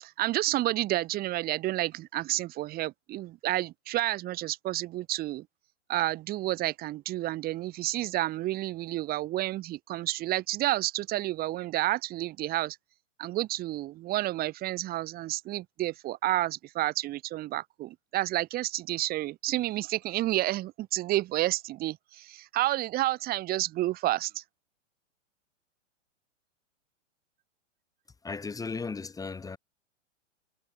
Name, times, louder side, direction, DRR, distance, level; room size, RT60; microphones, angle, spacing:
voice 1, 0.0-5.4 5.9-12.8 13.2-24.4, right 16 dB, 25° right, 1.2 m, -30 dB
voice 2, 28.2-29.6, left 4 dB, 10° left, 2.0 m, -36 dB
hypercardioid pair, 135°, 37 cm